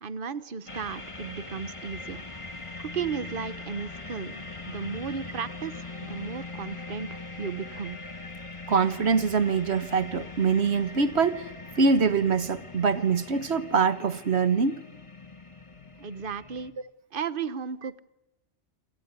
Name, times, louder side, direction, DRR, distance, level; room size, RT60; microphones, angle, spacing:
voice 1, 0.0-2.2 2.8-7.1 7.4-8.0 16.0-16.7 17.1-18.0, right 6 dB, 50° right, 1.2 m, -35 dB
sound 1, 0.7-16.7, left 3 dB, 25° left, 1.8 m, -41 dB
voice 2, 8.7-11.4 11.8-14.8, right 5 dB, 65° right, 1.6 m, -24 dB
28.0 x 18.0 x 9.6 m
omnidirectional pair, 1.2 m